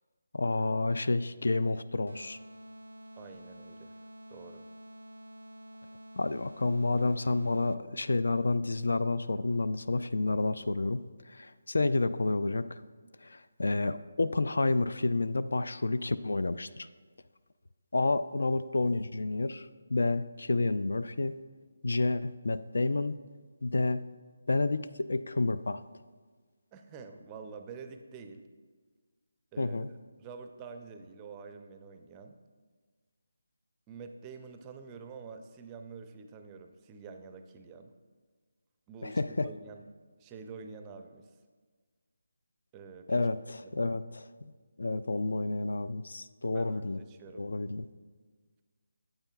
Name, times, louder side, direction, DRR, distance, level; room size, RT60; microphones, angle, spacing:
voice 1, 0.3-2.4 6.2-12.7 13.2-16.9 17.9-21.4 21.8-23.1 23.6-24.0 24.5-25.8 29.6-29.9 39.0-39.5 43.1-44.5 44.8-47.0 47.3-47.9, left 2 dB, 75° left, 14 dB, 0.3 m, -30 dB
sound 1, 2.1-8.0, equal, 85° right, 0.3 m, -49 dB
voice 2, 3.2-3.9 4.3-4.7 26.7-28.4 29.5-29.8 30.2-32.4 33.9-37.9 38.9-39.9 40.2-41.3 42.7-43.2 46.5-47.5, right 5 dB, 20° right, 7 dB, 0.4 m, -47 dB
8.8 x 7.9 x 2.3 m, 1.5 s
figure-of-eight pair, 160°, 0 cm